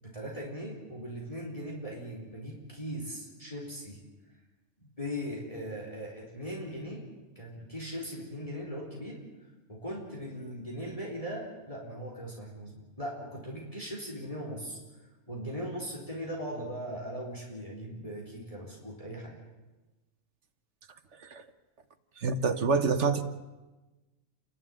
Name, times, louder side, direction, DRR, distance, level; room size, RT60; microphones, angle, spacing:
voice 1, 0.0-4.0 4.8-7.0 7.4-9.2 9.7-14.8 15.3-19.4, equal, 25° left, -2 dB, 4.1 m, -39 dB
voice 2, 22.2-23.2, right 4 dB, 55° right, 9 dB, 1.5 m, -27 dB
29.5 x 12.0 x 8.9 m, 1.1 s
omnidirectional pair, 1.5 m